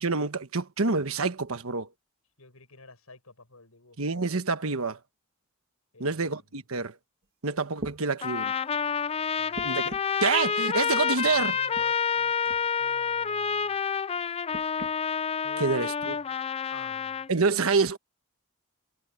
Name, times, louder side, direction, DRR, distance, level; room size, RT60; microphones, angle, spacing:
voice 1, 0.0-1.9 4.0-5.0 6.0-6.9 7.4-8.5 9.6-9.8 10.2-11.5 15.6-16.2 17.3-18.0, right 4 dB, 75° right, 1.3 m, -27 dB
voice 2, 2.4-4.2 5.9-6.4 9.3-9.8 11.2-13.8 15.4-15.7 16.1-16.3 16.7-17.2, left 3 dB, 85° left, 6.8 m, -50 dB
sound 1, 7.2-7.3 7.8-8.0 9.5-10.2 11.5-11.9 12.4-12.6 14.5-15.0 15.8-15.9, right 2 dB, 50° right, 1.7 m, -40 dB
Trumpet, 8.2-17.3, left 6 dB, 25° left, 0.4 m, -28 dB
head